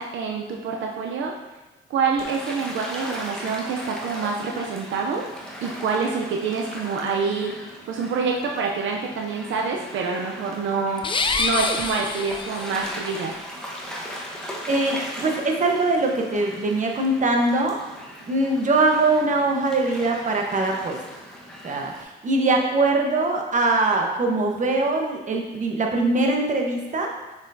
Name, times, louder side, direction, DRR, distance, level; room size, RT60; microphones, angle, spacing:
voice 1, 0.0-1.3 1.9-5.2 5.6-7.5 7.9-13.3, right 5 dB, 75° right, 1 dB, 0.6 m, -26 dB
Gull seagull / Waves surf, 2.2-22.0, equal, 5° left, 1.2 m, -38 dB
sound 1, 11.0-13.0, left 3 dB, 25° left, 0.5 m, -26 dB
voice 2, 14.7-17.8 18.3-21.0 21.6-27.1, right 2 dB, 40° right, 1 dB, 1.1 m, -22 dB
6.4 x 6.0 x 2.7 m, 1.1 s
cardioid pair, 90°, 20 cm